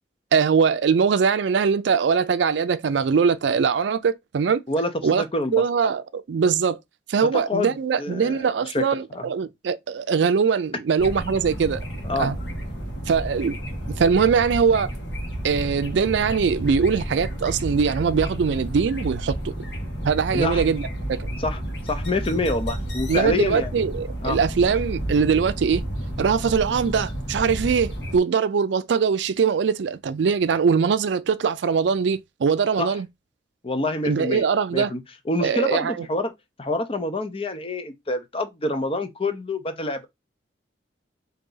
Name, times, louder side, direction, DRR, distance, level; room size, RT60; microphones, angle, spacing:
voice 1, 0.3-4.6 5.0-5.2 5.5-6.8 7.1-11.8 12.2-12.4 13.1-13.6 14.0-14.9 15.4-19.5 20.0-21.3 23.1-25.8 26.2-33.1 34.0-34.9 35.4-36.1, right 6 dB, 75° right, 0.4 m, -22 dB
voice 2, 4.7-5.6 7.3-8.8 9.1-9.3 12.0-12.3 20.3-20.6 21.4-21.6 21.9-23.7 24.2-24.4 32.8-32.9 33.6-35.0 35.3-36.3 36.6-40.1, left 2 dB, 30° left, 0.6 m, -27 dB
sound 1, 11.0-28.2, right 1 dB, 75° left, 1.3 m, -31 dB
3.9 x 2.8 x 3.8 m
head